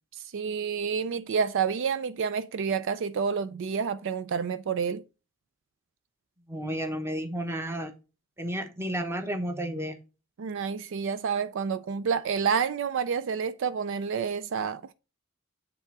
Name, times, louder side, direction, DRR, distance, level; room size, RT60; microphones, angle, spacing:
voice 1, 0.2-5.0 10.4-14.8, right 6 dB, 65° right, 0.4 m, -29 dB
voice 2, 6.5-7.9 8.4-10.0, equal, 10° right, 1.1 m, -32 dB
9.2 x 3.6 x 4.6 m
head